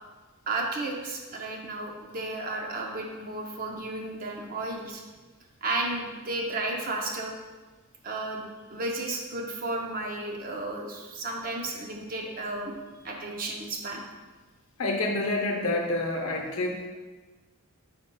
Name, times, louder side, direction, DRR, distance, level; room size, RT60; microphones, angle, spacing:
voice 1, 0.5-5.0 5.6-7.3 8.0-8.4 8.7-12.8 13.0-14.0, right 2 dB, 40° right, 0 dB, 0.6 m, -33 dB
voice 2, 14.8-16.9, left 2 dB, 75° left, 1 dB, 0.7 m, -28 dB
5.2 x 4.3 x 2.2 m, 1.3 s
head